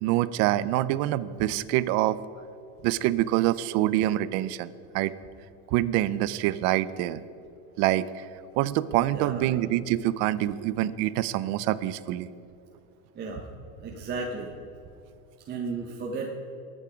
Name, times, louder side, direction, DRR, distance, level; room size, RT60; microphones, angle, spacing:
voice 1, 0.0-2.2 2.8-5.1 5.7-7.2 7.8-8.3 8.6-12.3, right 14 dB, 40° right, 15 dB, 0.5 m, -26 dB
voice 2, 9.1-9.5 13.1-13.4 13.8-14.5 15.5-16.3, right 4 dB, 20° right, -1 dB, 1.1 m, -34 dB
22.5 x 8.5 x 5.0 m, 2.9 s
supercardioid pair, 160°, 45 cm